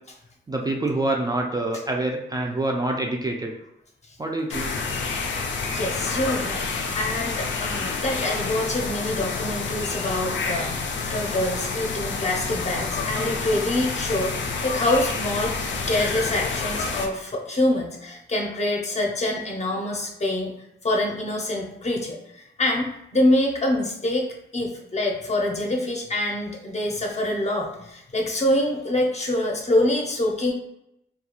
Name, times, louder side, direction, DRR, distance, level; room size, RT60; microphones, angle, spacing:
voice 1, 0.5-3.5 4.2-4.8, right 2 dB, 20° right, 0 dB, 0.4 m, -26 dB
sound 1, 4.5-17.1, left 4 dB, 80° left, 0.4 m, -28 dB
voice 2, 5.7-6.7 6.9-15.6 15.9-20.5 20.8-30.5, left 1 dB, 35° left, 0 dB, 0.6 m, -25 dB
2.3 x 2.3 x 2.9 m, 0.83 s
cardioid pair, 85°, 19 cm